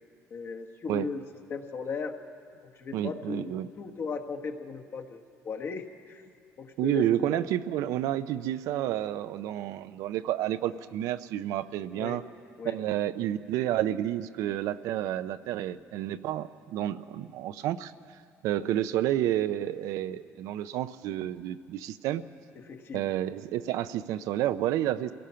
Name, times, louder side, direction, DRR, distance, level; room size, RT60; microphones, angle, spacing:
voice 1, 0.3-1.2 1.5-2.1 2.8-6.2 6.6-7.4 11.9-12.2 12.6-12.8 18.6-18.8 22.6-23.1, left 5 dB, 40° left, 4 dB, 1.3 m, -37 dB
voice 2, 2.9-3.7 6.8-12.2 12.6-17.9 18.4-22.2 22.9-25.1, right 12 dB, 80° right, 12 dB, 0.6 m, -30 dB
27.0 x 17.0 x 5.7 m, 2.3 s
cardioid pair, 145°, 6 cm